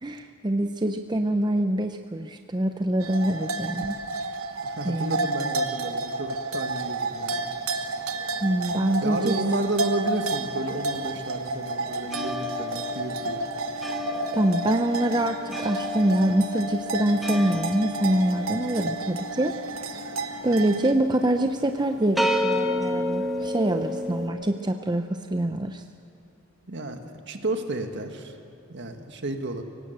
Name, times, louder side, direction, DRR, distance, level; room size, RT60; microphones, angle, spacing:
voice 1, 0.0-4.0 4.8-5.3 8.4-9.3 14.3-19.6 20.0-20.1 20.4-25.8, right 1 dB, 20° right, 6 dB, 0.6 m, -25 dB
sound 1, 3.0-20.9, right 3 dB, 80° right, 1.2 m, -31 dB
voice 2, 4.6-7.4 9.0-13.4 26.7-28.4 28.7-29.6, right 2 dB, 55° right, 5 dB, 1.7 m, -31 dB
sound 2, 6.6-9.2 9.5-24.3, left 2 dB, ahead, 1.4 m, -32 dB
24.0 x 18.0 x 7.9 m, 2.5 s
head